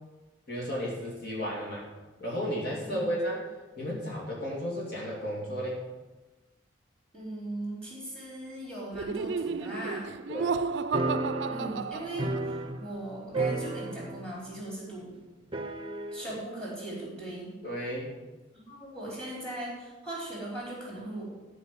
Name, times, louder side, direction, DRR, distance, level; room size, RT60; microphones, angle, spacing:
voice 1, 0.5-1.8 2.2-3.4 3.8-5.8 10.3-10.5 17.6-18.1, equal, 55° left, -4 dB, 2.7 m, -33 dB
voice 2, 7.1-10.1 11.5-15.2 16.1-17.5 18.7-21.2, right 1 dB, 5° left, -5 dB, 4.1 m, -39 dB
Laughter, 8.9-12.7, right 5 dB, 65° right, 0.4 m, -32 dB
sound 1, 10.9-13.1 13.3-14.4 14.6-14.7 15.5-16.3, right 2 dB, 25° right, 0.7 m, -33 dB
13.0 x 5.1 x 7.4 m, 1.2 s
head